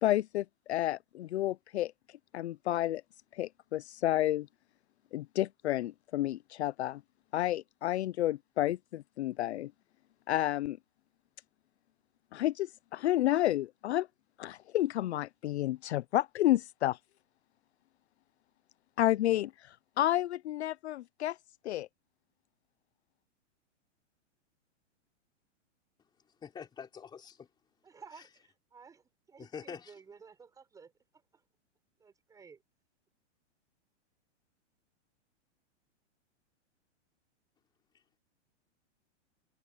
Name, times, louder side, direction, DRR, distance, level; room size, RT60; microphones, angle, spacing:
voice 1, 0.0-1.9 2.3-3.0 3.3-4.5 5.1-7.0 7.3-9.7 10.3-10.8 12.3-14.1 14.4-17.0 19.0-19.5 20.0-21.4 21.6-21.9, left 14 dB, 65° left, 0.6 m, -30 dB
voice 2, 26.4-27.5 29.4-29.9, left 7 dB, 10° left, 4.0 m, -45 dB
voice 3, 27.8-28.3 28.7-29.0 29.3-30.9 31.3-31.4 32.0-32.6, right 5 dB, 10° right, 4.3 m, -53 dB
hypercardioid pair, 165°, 36 cm